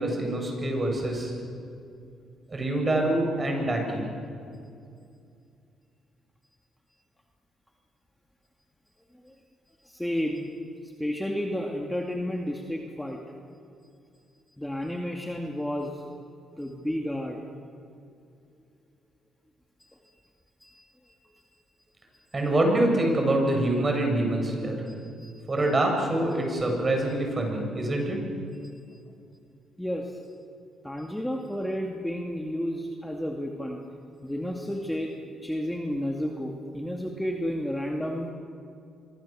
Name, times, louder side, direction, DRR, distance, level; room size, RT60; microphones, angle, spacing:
voice 1, 0.0-1.3 2.5-4.1 22.3-24.9 25.5-28.2, right 1 dB, 30° right, 2 dB, 7.5 m, -25 dB
voice 2, 9.8-10.5 10.8-13.2 14.6-16.0 16.6-17.4 20.6-20.8 25.2-25.3 29.8-30.2 30.8-33.8 34.2-35.1 35.4-38.3, equal, 5° left, 1 dB, 2.5 m, -31 dB
27.0 x 23.5 x 7.7 m, 2.5 s
cardioid pair, 90°, 0 cm